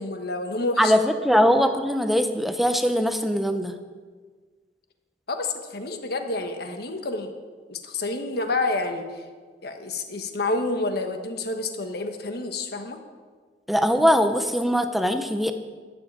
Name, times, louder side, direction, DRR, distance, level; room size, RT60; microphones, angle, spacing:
voice 1, 0.0-1.0 1.3-1.5 5.3-7.3 7.7-9.2 9.6-13.0, left 2 dB, 65° left, 6 dB, 1.3 m, -29 dB
voice 2, 0.8-3.7 13.7-15.5, equal, ahead, 8 dB, 0.7 m, -21 dB
12.5 x 7.5 x 7.6 m, 1.5 s
head